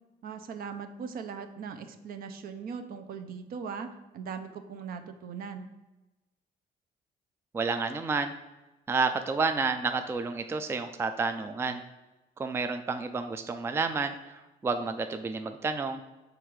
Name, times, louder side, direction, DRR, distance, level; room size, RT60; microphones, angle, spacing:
voice 1, 0.2-3.9 4.1-5.7, right 6 dB, 60° right, 7 dB, 0.7 m, -39 dB
voice 2, 7.5-8.3 8.9-11.8 12.4-16.0, right 4 dB, 15° right, 8 dB, 0.3 m, -30 dB
6.6 x 3.6 x 4.6 m, 1.1 s
cardioid pair, 110°, 17 cm